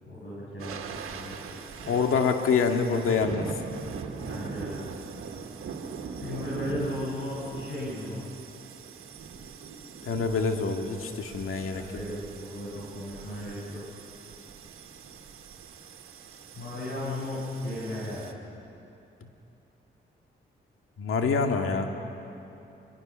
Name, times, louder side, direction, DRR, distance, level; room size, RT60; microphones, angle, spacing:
voice 1, 0.0-2.0 4.2-4.8 6.2-8.2 11.6-13.8 16.5-18.4, left 1 dB, 65° left, -7 dB, 7.7 m, -36 dB
sound 1, 0.6-18.3, right 5 dB, 85° right, 1.7 m, -41 dB
voice 2, 1.9-3.5 10.0-11.9 21.0-21.9, left 5 dB, 80° left, 4 dB, 2.1 m, -26 dB
26.0 x 23.5 x 6.3 m, 2.8 s
supercardioid pair, 50°, 21 cm